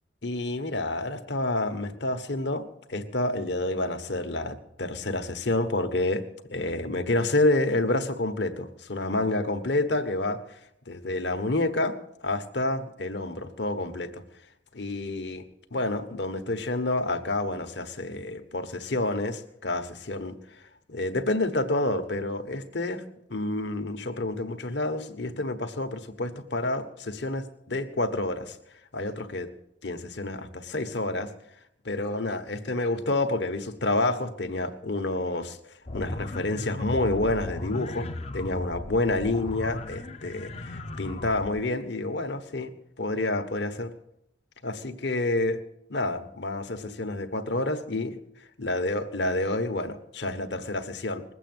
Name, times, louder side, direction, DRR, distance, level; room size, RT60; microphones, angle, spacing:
voice 1, 0.2-6.2 6.5-10.4 10.9-12.0 12.2-14.2 14.7-15.4 15.7-20.4 20.9-23.0 23.3-28.6 28.9-29.5 29.8-31.3 31.8-35.6 35.9-43.9 44.6-45.6 45.9-48.1 48.6-51.2, left 2 dB, 65° left, 8 dB, 1.3 m, -29 dB
sound 1, 35.9-41.6, left 1 dB, 35° left, 0.6 m, -37 dB
20.5 x 8.3 x 8.0 m, 0.79 s
head